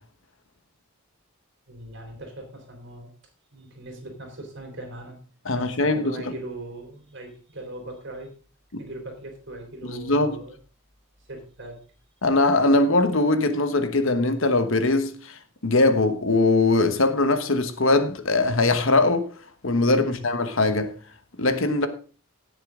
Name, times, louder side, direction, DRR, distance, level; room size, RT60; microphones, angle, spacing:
voice 1, 1.7-3.1 3.5-5.2 5.6-8.3 8.8-10.6 11.3-11.8 20.0-20.2, right 1 dB, 55° right, 3.5 m, -40 dB
voice 2, 5.4-6.3 8.7-8.8 9.8-10.4 12.2-19.3 19.6-20.9 21.4-21.9, left 2 dB, 60° left, 1.2 m, -21 dB
17.5 x 6.7 x 3.7 m
head